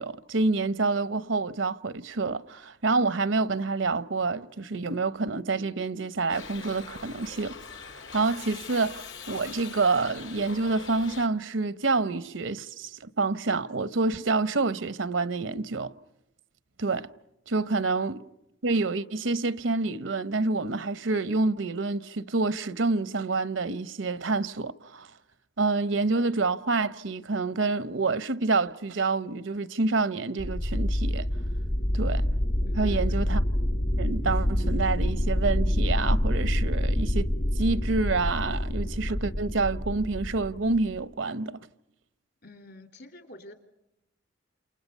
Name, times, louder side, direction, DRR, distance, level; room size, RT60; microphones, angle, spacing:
voice 1, 0.0-7.6 8.1-15.9 16.8-17.1 17.5-18.3 18.6-25.1 25.6-31.3 31.9-32.3 32.8-33.4 34.0-37.3 37.6-41.6, right 3 dB, 80° right, 0.8 m, -27 dB
Shout / Livestock farm animals working animals, 6.3-11.3, left 5 dB, 75° left, 1.7 m, -42 dB
voice 2, 17.6-18.0 32.7-33.0 42.4-43.5, left 1 dB, 60° left, 2.7 m, -49 dB
sound 1, 30.4-41.0, left 1 dB, 45° left, 1.1 m, -27 dB
28.5 x 28.5 x 5.5 m
head